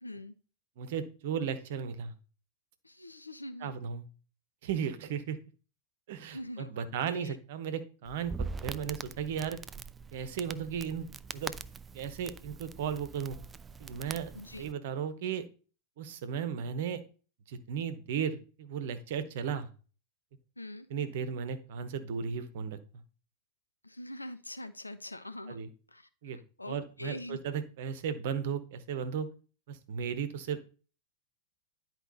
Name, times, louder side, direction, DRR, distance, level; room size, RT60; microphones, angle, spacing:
voice 1, 0.0-0.3 2.8-3.8 6.3-7.4 14.3-14.7 20.6-20.9 23.8-27.4, left 1 dB, 85° left, 11 dB, 0.6 m, -44 dB
voice 2, 0.8-2.1 3.6-4.0 4.6-5.4 6.1-9.6 10.1-11.1 11.3-11.5 11.9-13.4 13.8-14.3 14.6-15.4 16.0-17.0 17.5-19.7 20.9-22.8 25.5-25.7 26.2-26.4 26.7-29.3 29.7-30.6, right 7 dB, 55° right, 11 dB, 0.9 m, -35 dB
Crackle, 8.1-14.7, right 4 dB, 15° right, 0.4 m, -43 dB
10.5 x 4.5 x 4.0 m, 0.37 s
figure-of-eight pair, 90°, 0 cm